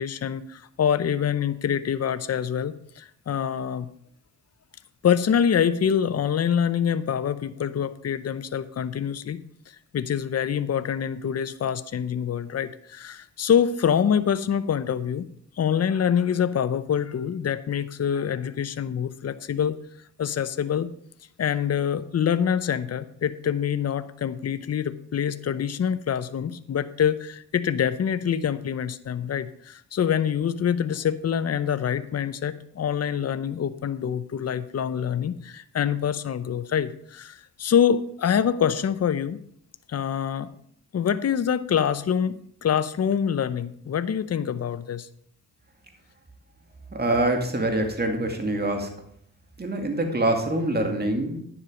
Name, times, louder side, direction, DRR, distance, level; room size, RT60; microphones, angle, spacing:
voice 1, 0.0-3.9 5.0-15.3 15.6-19.8 20.2-20.9 21.4-39.4 39.9-40.5 40.9-45.1, left 8 dB, 45° left, 13 dB, 0.7 m, -25 dB
voice 2, 46.9-48.9 49.6-51.4, right 1 dB, 30° right, 3 dB, 2.3 m, -25 dB
9.9 x 7.3 x 5.0 m, 0.65 s
cardioid pair, 65°, 35 cm